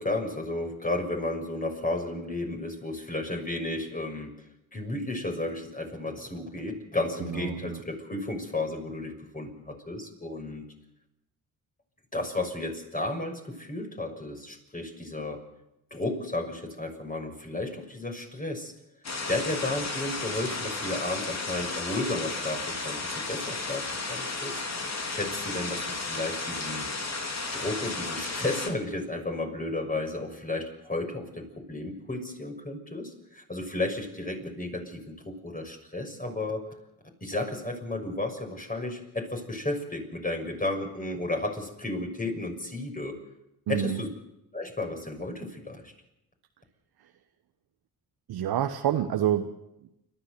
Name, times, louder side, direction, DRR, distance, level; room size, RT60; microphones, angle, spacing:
voice 1, 0.0-4.3 4.7-10.6 12.1-15.4 15.9-18.7 19.3-24.6 25.1-26.9 27.5-36.7 37.2-43.2 43.7-44.1 44.5-45.9, left 2 dB, 20° left, 3 dB, 6.4 m, -33 dB
voice 2, 7.2-7.8 43.7-44.0 48.3-49.5 49.8-49.9, right 10 dB, 70° right, 6 dB, 1.2 m, -28 dB
sound 1, 19.0-28.7, left 3 dB, 40° left, 3.4 m, -33 dB
29.5 x 13.0 x 6.8 m, 0.86 s
supercardioid pair, 55°, 39 cm